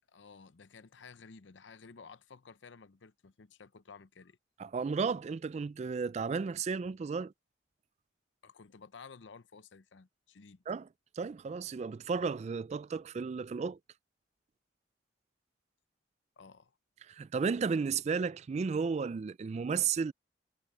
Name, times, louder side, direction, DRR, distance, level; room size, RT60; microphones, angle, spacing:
voice 1, 0.1-4.4 8.4-10.6 16.4-16.7, left 5 dB, 80° left, 0.7 m, -54 dB
voice 2, 4.6-7.3 10.7-10.9 11.2-13.8 17.1-20.1, right 5 dB, 35° right, 0.3 m, -33 dB
head